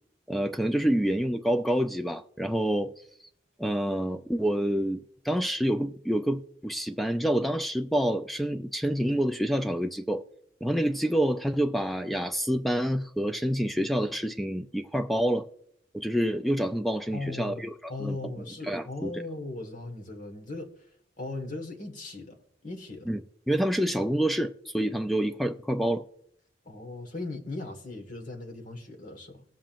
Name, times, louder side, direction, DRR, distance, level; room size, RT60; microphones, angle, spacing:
voice 1, 0.3-2.9 3.6-5.0 5.2-10.2 10.6-15.4 15.9-17.7 18.0-18.2 18.7-19.1 23.1-23.2 23.5-26.0, equal, ahead, 0.4 m, -27 dB
voice 2, 17.1-17.6 17.9-20.7 21.2-22.4 22.6-23.0 26.6-29.4, left 2 dB, 45° left, 1.6 m, -38 dB
19.5 x 7.4 x 2.5 m
head